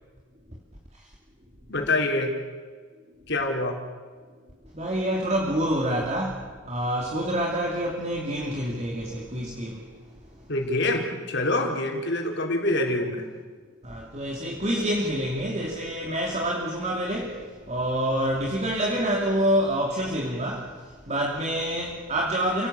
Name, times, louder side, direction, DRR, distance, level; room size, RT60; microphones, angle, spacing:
voice 1, 1.7-2.3 3.3-3.8 10.5-13.3, left 2 dB, 55° left, 2 dB, 4.5 m, -25 dB
voice 2, 4.7-9.8 13.8-22.7, equal, 35° right, -1 dB, 3.0 m, -27 dB
30.0 x 17.5 x 8.5 m, 1.5 s
head